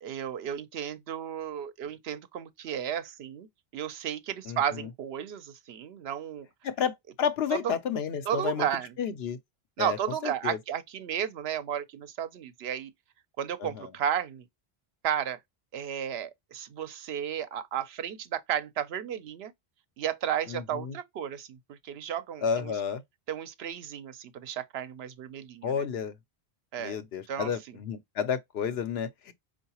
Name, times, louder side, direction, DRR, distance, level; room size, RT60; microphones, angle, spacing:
voice 1, 0.0-3.5 3.7-6.5 7.5-7.7 8.3-8.9 9.8-12.9 13.4-14.4 15.0-15.4 15.7-19.5 20.0-22.7 23.3-25.7 26.7-27.0 27.3-27.8, right 9 dB, 80° right, 0.9 m, -33 dB
voice 2, 4.5-4.9 6.6-8.7 9.0-9.4 9.8-10.0 10.2-10.6 13.6-13.9 20.5-21.0 22.4-23.0 25.6-26.1 26.8-29.3, left 7 dB, 85° left, 0.9 m, -31 dB
4.6 x 2.4 x 2.8 m
omnidirectional pair, 1.0 m